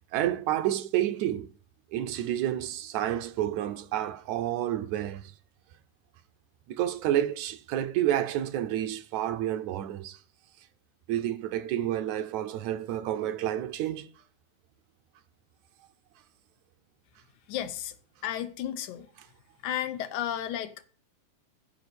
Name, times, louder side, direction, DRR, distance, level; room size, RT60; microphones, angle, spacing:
voice 1, 0.1-1.5 1.9-5.3 6.7-10.2 11.1-14.1, right 12 dB, 75° right, 2.0 m, -29 dB
voice 2, 17.5-17.9 18.2-19.1 19.6-20.8, left 11 dB, 80° left, 2.2 m, -33 dB
14.5 x 5.1 x 6.8 m
omnidirectional pair, 3.5 m